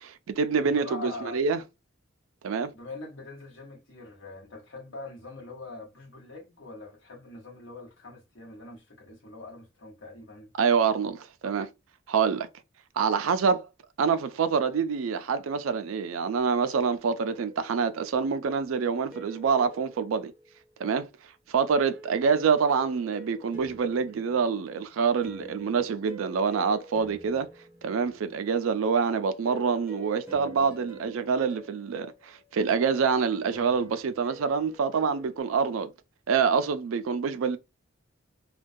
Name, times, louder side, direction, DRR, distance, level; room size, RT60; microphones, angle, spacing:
voice 1, 0.0-1.6 2.4-2.7 10.6-11.7 12.1-12.5 13.0-13.6 14.0-20.3 20.8-21.1 21.5-27.5 27.8-35.9 36.3-37.6, right 6 dB, 90° right, 0.4 m, -26 dB
voice 2, 0.6-1.4 2.7-10.5 11.4-11.6, left 3 dB, 70° left, 0.9 m, -43 dB
sound 1, 17.3-18.3 19.1-20.9 21.9-28.6 29.5-35.4, right 1 dB, 10° right, 0.6 m, -48 dB
2.2 x 2.2 x 2.6 m
head